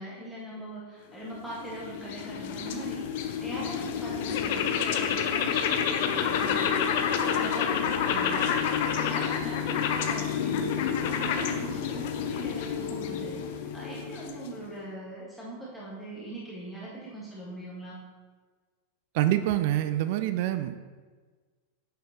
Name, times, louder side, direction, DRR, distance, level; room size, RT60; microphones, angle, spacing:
voice 1, 0.0-18.0, right 2 dB, ahead, -7 dB, 1.6 m, -41 dB
sound 1, 1.3-14.7, left 8 dB, 50° left, 0.6 m, -29 dB
voice 2, 19.1-20.8, right 13 dB, 50° right, 11 dB, 0.4 m, -26 dB
8.7 x 5.5 x 3.0 m, 1.4 s
figure-of-eight pair, 90°, 0 cm